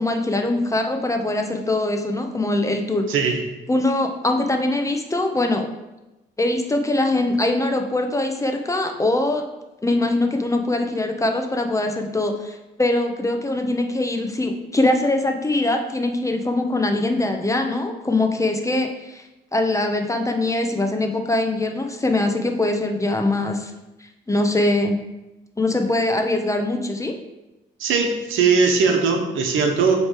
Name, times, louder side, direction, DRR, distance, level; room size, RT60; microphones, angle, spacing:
voice 1, 0.0-3.1 3.7-5.7 6.4-9.5 9.8-19.2 19.5-23.7 24.3-25.0 25.6-27.2, left 2 dB, 15° left, 5 dB, 0.8 m, -22 dB
voice 2, 3.1-3.4 27.8-30.0, right 5 dB, 85° right, 3 dB, 1.0 m, -19 dB
7.8 x 3.3 x 4.4 m, 1.0 s
cardioid pair, 90°, 20 cm